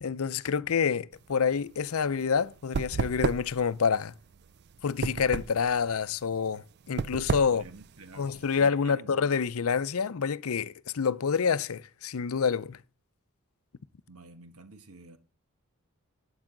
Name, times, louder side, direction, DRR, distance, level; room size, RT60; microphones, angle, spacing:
voice 1, 0.0-4.1 4.8-7.6 8.2-12.8, left 6 dB, 75° left, 0.5 m, -27 dB
sound 1, 1.1-8.7, right 5 dB, 50° right, 0.4 m, -34 dB
voice 2, 7.5-8.3 8.6-9.3 14.1-15.2, right 3 dB, 85° right, 1.4 m, -49 dB
12.0 x 8.8 x 3.8 m
head